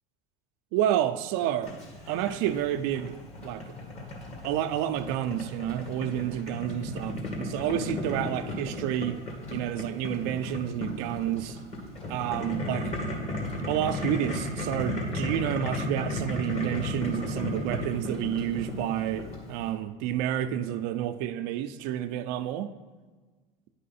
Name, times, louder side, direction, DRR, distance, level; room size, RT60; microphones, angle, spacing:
voice 1, 0.7-1.8 2.1-3.1 3.4-3.7 4.4-7.1 7.4-9.2 9.5-11.6 12.1-12.9 13.7-22.7, right 11 dB, 70° right, 0.5 m, -29 dB
Boiling, 1.6-19.7, left 1 dB, 40° left, 2.1 m, -35 dB
9.8 x 5.5 x 4.2 m
supercardioid pair, 115°, 17 cm